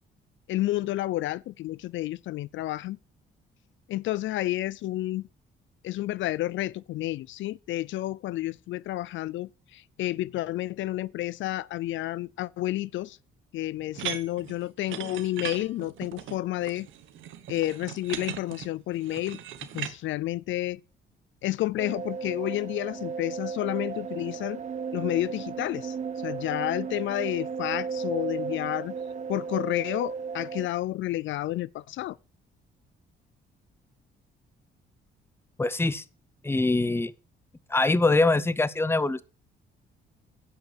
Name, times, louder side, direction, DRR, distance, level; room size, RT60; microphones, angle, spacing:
voice 1, 0.5-3.0 3.9-5.2 5.8-13.2 13.5-16.9 17.5-19.4 19.7-20.8 21.4-24.6 24.9-26.0 26.2-28.9 29.3-32.2, left 15 dB, 75° left, 0.4 m, -30 dB
sound 1, 13.9-19.9, right 11 dB, 80° right, 1.2 m, -38 dB
sound 2, 21.8-30.7, right 6 dB, 35° right, 0.6 m, -34 dB
voice 2, 35.6-36.0 36.4-37.1 37.7-39.2, left 2 dB, 10° left, 0.7 m, -23 dB
10.5 x 6.0 x 6.9 m
cardioid pair, 90°, 20 cm